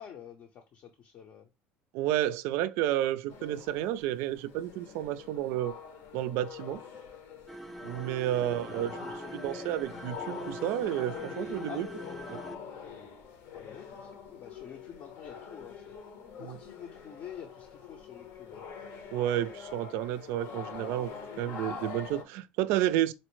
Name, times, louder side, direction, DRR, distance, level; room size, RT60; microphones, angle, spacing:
voice 1, 0.0-1.5 8.4-9.4 11.7-11.9 13.5-16.0 16.4-18.6, left 8 dB, 50° left, 0.6 m, -48 dB
voice 2, 1.9-5.8 6.1-6.8 7.8-8.9 9.3-11.9 12.3-12.4 16.4-16.6 19.1-21.1 21.4-23.1, right 13 dB, 75° right, 0.3 m, -31 dB
sound 1, 3.3-22.2, left 6 dB, 70° left, 0.9 m, -45 dB
sound 2, 7.5-12.6, right 1 dB, ahead, 0.5 m, -43 dB
4.1 x 2.0 x 3.1 m
supercardioid pair, 105°, 4 cm